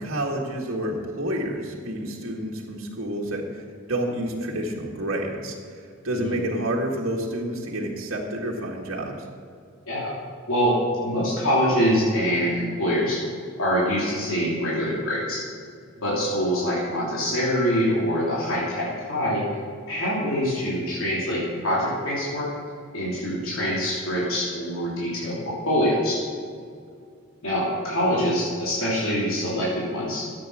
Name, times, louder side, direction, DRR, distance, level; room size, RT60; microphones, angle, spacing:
voice 1, 0.0-3.6 3.9-9.2, right 1 dB, 75° right, -2 dB, 1.8 m, -29 dB
voice 2, 10.5-10.8 11.0-13.2 13.6-15.4 16.0-19.4 19.9-22.5 22.9-26.2 27.4-30.3, equal, 80° left, -7 dB, 3.1 m, -24 dB
14.0 x 8.6 x 6.2 m, 2.2 s
head